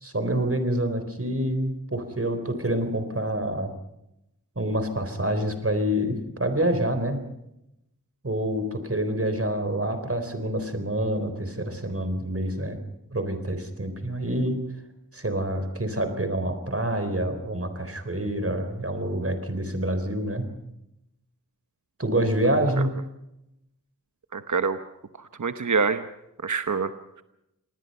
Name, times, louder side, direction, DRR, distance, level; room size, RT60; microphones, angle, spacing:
voice 1, 0.0-3.7 4.6-7.2 8.2-12.8 13.1-14.6 15.1-20.5 22.0-22.9, right 1 dB, 45° right, 8 dB, 4.1 m, -27 dB
voice 2, 24.3-24.8 25.2-26.0 26.4-26.9, right 5 dB, 60° right, 9 dB, 1.0 m, -25 dB
28.0 x 19.5 x 5.6 m, 0.85 s
wide cardioid pair, 50°, 33 cm